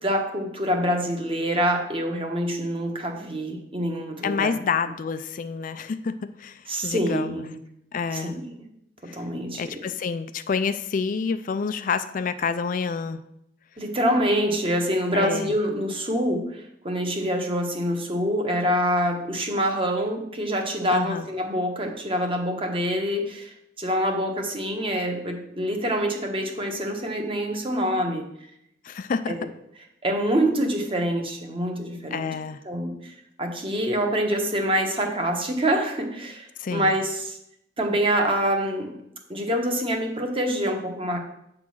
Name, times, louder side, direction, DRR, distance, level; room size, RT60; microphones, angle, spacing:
voice 1, 0.0-4.6 6.7-7.5 8.1-8.5 9.0-9.8 13.8-28.3 29.3-29.5 30.0-32.3 32.6-33.1 33.4-37.4 37.8-39.0 39.3-41.2, equal, 30° right, 3 dB, 1.2 m, -26 dB
voice 2, 4.2-6.1 6.4-7.4 7.9-8.4 9.6-13.2 15.1-15.5 20.9-21.3 28.8-29.3 32.1-32.6 36.6-36.9, left 5 dB, 50° left, 11 dB, 0.4 m, -28 dB
8.4 x 3.8 x 6.2 m, 0.77 s
head